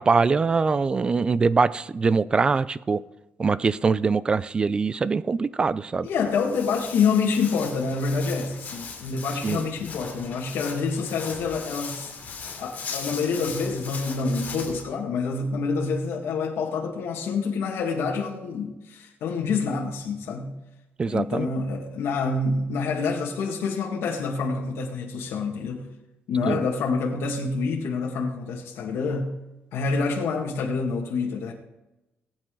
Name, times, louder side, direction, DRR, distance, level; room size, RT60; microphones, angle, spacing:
voice 1, 0.0-3.0 3.4-6.1 9.4-9.6 21.0-21.5 26.5-26.7, right 4 dB, 20° right, 0.3 m, -23 dB
voice 2, 6.0-12.1 12.6-20.5 21.0-25.9 26.3-29.3 29.7-31.5, left 4 dB, 80° left, 1.9 m, -27 dB
Walk footsteps, 6.1-14.8, left 5 dB, 40° left, 2.9 m, -38 dB
19.0 x 8.7 x 3.9 m
cardioid pair, 175°, 4 cm